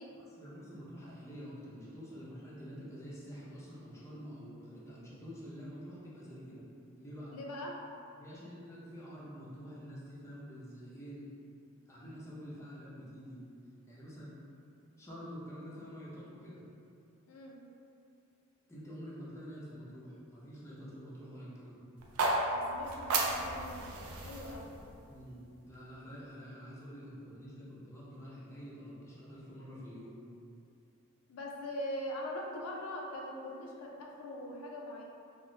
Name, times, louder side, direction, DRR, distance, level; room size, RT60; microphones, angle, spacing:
voice 1, 0.2-6.7 7.0-7.3 8.1-11.3 11.9-13.4 13.9-14.4 15.0-16.6 18.7-21.9 25.1-30.2, equal, 15° left, -8 dB, 0.5 m, -47 dB
voice 2, 7.3-7.8 17.3-17.6 22.5-24.8 31.3-35.0, left 1 dB, 75° left, 0 dB, 0.3 m, -42 dB
sound 1, 22.0-26.1, right 2 dB, 90° right, 0.4 m, -35 dB
3.0 x 2.0 x 2.6 m, 2.6 s
head